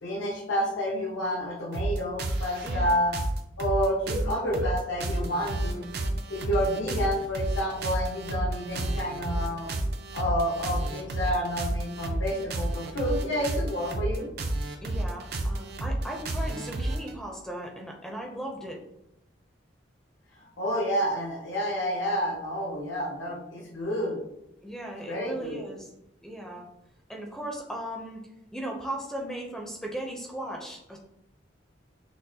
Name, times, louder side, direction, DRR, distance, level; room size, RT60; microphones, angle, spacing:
voice 1, 0.0-3.2 3.6-5.9 6.3-9.7 10.1-14.3 20.4-24.2 25.1-25.6, equal, 85° left, -2 dB, 0.9 m, -29 dB
sound 1, 1.7-17.1, right 1 dB, 55° right, 0.4 m, -31 dB
voice 2, 2.6-3.0 14.8-18.8 24.6-25.9 26.2-26.7 27.1-31.0, right 1 dB, 5° left, 0 dB, 0.4 m, -37 dB
6.1 x 2.1 x 2.7 m, 0.82 s
head